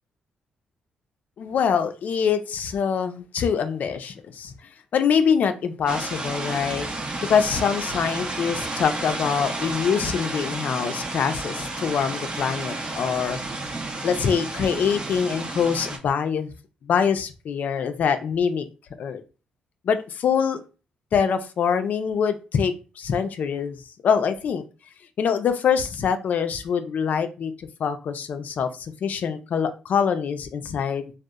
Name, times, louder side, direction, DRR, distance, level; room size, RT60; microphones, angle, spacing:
voice 1, 1.4-4.5 4.9-6.9 7.3-13.4 14.0-16.5 16.8-18.7 19.0-19.2 19.8-20.6 21.1-24.6 25.2-31.1, left 7 dB, 65° left, 9 dB, 0.4 m, -24 dB
sound 1, 5.9-16.0, right 2 dB, 35° right, 0.5 m, -31 dB
2.8 x 2.0 x 2.3 m, 0.32 s
cardioid pair, 70°, 3 cm